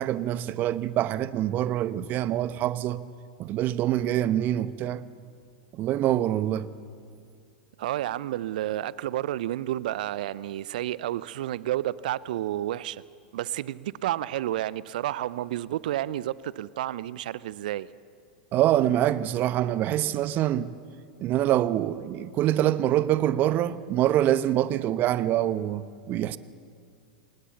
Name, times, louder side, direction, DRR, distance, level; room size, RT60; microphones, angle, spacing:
voice 1, 0.0-3.0 3.4-5.0 5.7-6.7 18.5-20.7 21.2-26.4, right 12 dB, 40° right, 1.0 m, -25 dB
voice 2, 7.8-13.0 13.3-17.9, right 13 dB, 65° right, 0.7 m, -30 dB
25.5 x 20.0 x 7.1 m
hypercardioid pair, 95°, 5 cm